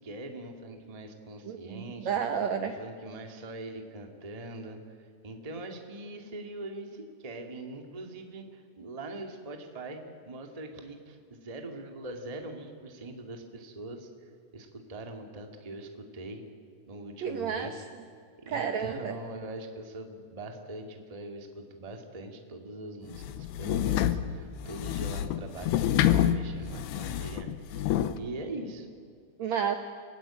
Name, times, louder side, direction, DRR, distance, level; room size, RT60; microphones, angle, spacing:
voice 1, 0.0-2.1 2.6-16.4 16.9-17.9 18.4-28.9, right 2 dB, 20° right, 3 dB, 1.1 m, -42 dB
voice 2, 1.5-2.8 17.2-17.7 18.5-19.2 29.4-29.8, right 7 dB, 75° right, 7 dB, 1.6 m, -31 dB
sound 1, 23.1-28.2, left 11 dB, 75° left, 2.9 m, -28 dB
28.0 x 17.5 x 9.0 m, 2.3 s
omnidirectional pair, 4.9 m